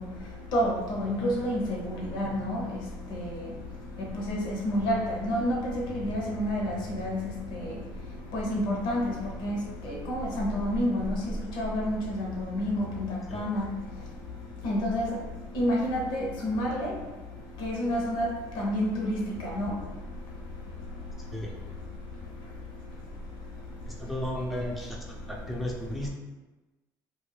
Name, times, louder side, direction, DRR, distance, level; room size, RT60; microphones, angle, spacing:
voice 1, 0.0-24.2 24.8-26.1, equal, 70° left, -2 dB, 0.8 m, -31 dB
voice 2, 23.9-25.0 25.3-26.1, left 1 dB, ahead, -2 dB, 0.5 m, -34 dB
2.3 x 2.3 x 3.2 m, 1.1 s
supercardioid pair, 85°, 8 cm